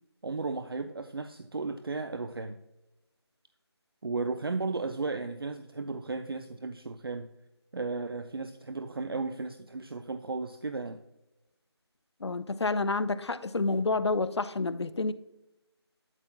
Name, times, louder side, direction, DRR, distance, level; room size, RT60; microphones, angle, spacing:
voice 1, 0.2-2.6 4.0-7.3 7.7-11.0, right 3 dB, 55° right, 0.4 m, -35 dB
voice 2, 12.2-15.1, left 3 dB, 75° left, 0.5 m, -29 dB
12.0 x 5.6 x 2.2 m
figure-of-eight pair, 175°, 14 cm